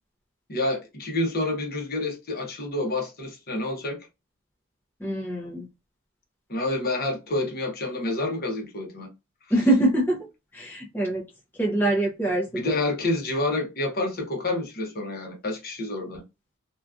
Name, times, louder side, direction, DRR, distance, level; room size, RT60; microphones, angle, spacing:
voice 1, 0.5-4.0 6.5-9.1 12.5-16.2, left 2 dB, 45° left, 0.9 m, -28 dB
voice 2, 5.0-5.7 9.5-10.3 10.5-11.3 11.6-12.5, right 1 dB, 10° left, 0.5 m, -24 dB
2.8 x 2.3 x 2.4 m
head